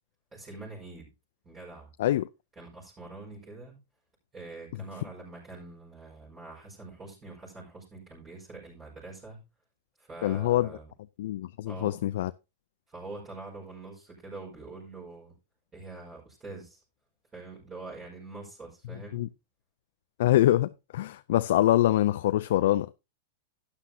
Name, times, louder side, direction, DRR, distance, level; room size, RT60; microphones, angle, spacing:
voice 1, 0.3-1.1 1.4-1.9 2.6-3.8 4.3-9.4 10.0-10.9 11.6-12.0 12.9-15.3 15.7-16.8 17.3-19.3, right 3 dB, 20° right, 5.2 m, -45 dB
voice 2, 10.2-10.7 11.2-12.3 19.1-19.3 20.2-22.9, left 14 dB, 70° left, 0.4 m, -24 dB
12.0 x 9.7 x 2.8 m
hypercardioid pair, 120°, 0 cm